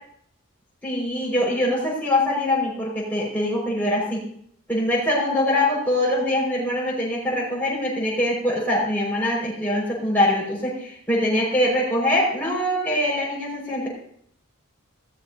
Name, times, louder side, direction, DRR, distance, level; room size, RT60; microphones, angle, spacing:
voice 1, 0.8-4.2 4.7-13.9, left 1 dB, 10° left, -5 dB, 5.2 m, -23 dB
15.5 x 13.5 x 2.7 m, 0.64 s
head